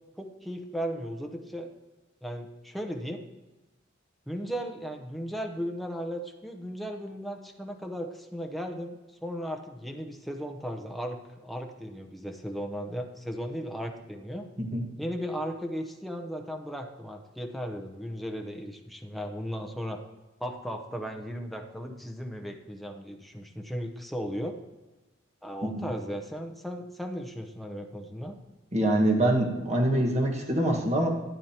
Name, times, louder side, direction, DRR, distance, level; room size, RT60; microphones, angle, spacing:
voice 1, 0.2-1.7 2.2-3.2 4.3-14.5 15.0-20.0 20.4-24.6 25.4-28.4, equal, ahead, 3 dB, 0.7 m, -36 dB
voice 2, 28.7-31.1, right 1 dB, 35° right, 1 dB, 1.5 m, -24 dB
12.0 x 9.3 x 2.9 m, 1.1 s
head